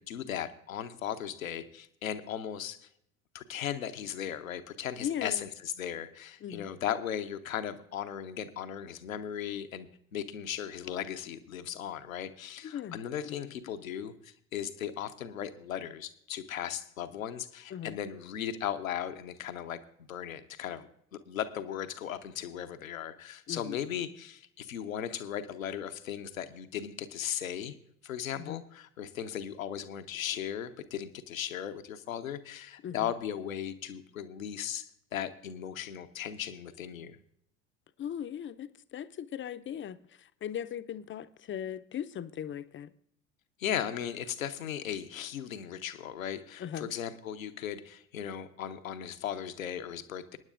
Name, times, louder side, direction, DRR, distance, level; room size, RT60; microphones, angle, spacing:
voice 1, 0.0-2.9 3.3-19.8 20.1-27.7 28.0-37.2 43.6-50.4, left 9 dB, 85° left, 9 dB, 0.8 m, -37 dB
voice 2, 5.0-5.5 6.4-6.7 12.7-13.0 13.3-13.4 17.7-18.0 23.5-23.8 28.3-28.6 32.8-33.1 38.0-42.9 46.6-46.9, left 9 dB, 30° left, 11 dB, 0.6 m, -38 dB
24.0 x 9.7 x 2.5 m, 0.71 s
hypercardioid pair, 65°, 40 cm